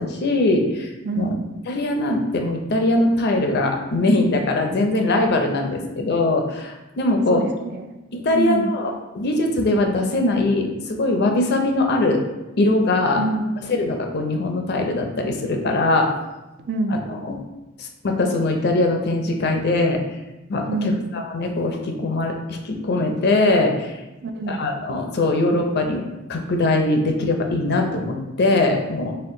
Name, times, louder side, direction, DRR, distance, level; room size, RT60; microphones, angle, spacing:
voice 1, 0.0-0.9 1.2-1.3 1.7-7.4 8.1-12.2 12.6-13.2 13.7-16.1 16.9-17.4 17.8-20.0 20.5-24.0 24.5-26.0 26.3-29.1, left 2 dB, 55° left, 3 dB, 0.5 m, -21 dB
voice 2, 1.0-1.4 7.3-7.9 8.3-8.7 13.2-13.6 16.6-17.0 20.7-21.1 24.2-24.6, right 2 dB, 55° right, 6 dB, 0.4 m, -26 dB
4.3 x 2.2 x 3.7 m, 1.0 s
head